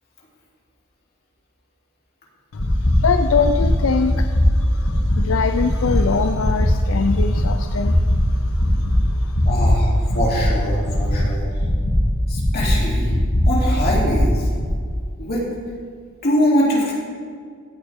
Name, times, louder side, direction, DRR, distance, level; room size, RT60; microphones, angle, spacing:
voice 1, 2.5-9.5 11.1-11.4, left 5 dB, 70° left, 7 dB, 0.5 m, -24 dB
sound 1, 2.6-2.9 3.3-3.7 4.1-4.4 4.8-5.2 5.6-5.9 6.3-6.7 7.1-7.4 7.8-8.2 8.6-8.9 9.3-9.7 10.1-10.4 10.8-11.2 11.6-11.9 12.3-12.7 13.1-13.4 13.8-14.2 14.6-14.7, left 1 dB, 85° left, 2.4 m, -21 dB
voice 2, 9.4-9.9 10.1-11.5 12.3-13.1 13.4-14.5 15.2-15.4 16.2-16.9, equal, 50° left, -5 dB, 2.9 m, -22 dB
15.5 x 8.1 x 3.6 m, 2.1 s
head